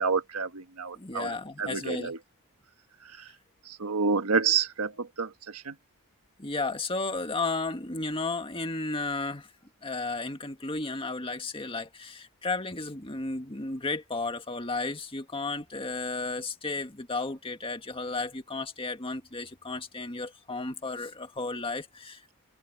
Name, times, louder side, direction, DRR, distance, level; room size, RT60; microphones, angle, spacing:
voice 1, 0.0-1.3 1.6-2.2 3.8-5.3 5.7-5.8, right 5 dB, 85° right, 1.6 m, -28 dB
voice 2, 1.0-2.1 6.4-9.5 9.8-22.3, left 3 dB, 25° left, 1.9 m, -33 dB
open air
head